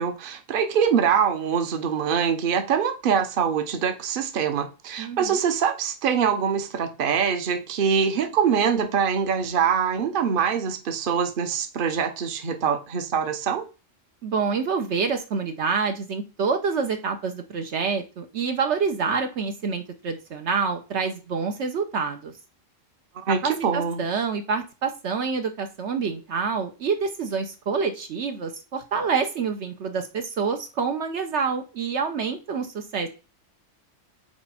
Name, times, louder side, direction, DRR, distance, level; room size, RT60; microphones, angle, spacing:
voice 1, 0.0-13.7 23.2-24.0, right 7 dB, 50° right, 1.0 m, -24 dB
voice 2, 5.0-5.4 14.2-22.3 23.3-33.1, right 5 dB, 70° right, 1.0 m, -27 dB
5.0 x 4.2 x 5.5 m
omnidirectional pair, 1.3 m